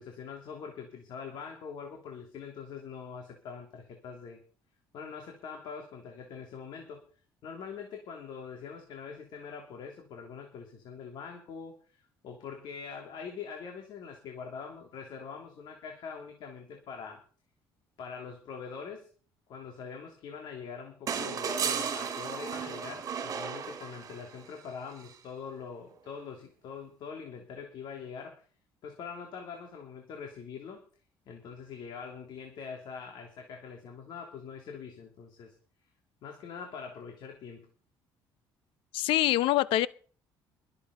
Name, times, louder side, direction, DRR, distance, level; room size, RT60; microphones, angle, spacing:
voice 1, 0.0-4.4 4.9-7.0 7.4-17.2 18.0-19.1 19.5-28.4 28.8-30.8 31.2-35.5 36.2-37.7, left 6 dB, 60° left, 3.3 m, -43 dB
sound 1, 21.1-24.4 25.9-26.0, right 7 dB, 40° right, 2.9 m, -34 dB
voice 2, 38.9-39.9, left 15 dB, 85° left, 0.8 m, -25 dB
22.0 x 8.6 x 5.4 m
cardioid pair, 145°, 9 cm